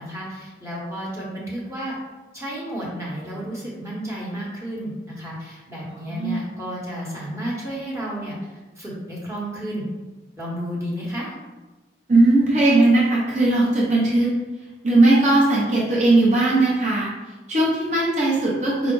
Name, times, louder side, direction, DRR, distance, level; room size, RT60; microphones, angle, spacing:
voice 1, 0.0-1.9 2.3-9.9 10.4-11.3, equal, 15° right, -6 dB, 1.1 m, -32 dB
voice 2, 5.9-6.4 12.1-14.3 14.8-17.1 17.5-18.9, right 2 dB, 40° right, -5 dB, 0.8 m, -18 dB
4.9 x 2.4 x 3.8 m, 1.2 s
head